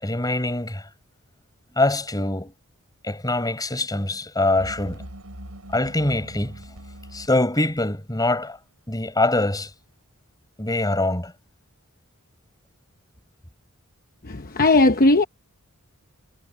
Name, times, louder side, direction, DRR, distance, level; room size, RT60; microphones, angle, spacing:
voice 1, 0.0-0.9 1.7-2.5 3.0-5.0 5.7-6.6 7.1-8.6 8.9-9.7 10.6-11.3, left 2 dB, 15° left, 5.2 m, -24 dB
sound 1, 4.5-7.3, right 1 dB, 90° right, 4.9 m, -40 dB
voice 2, 14.2-15.2, left 2 dB, 40° left, 0.9 m, -17 dB
head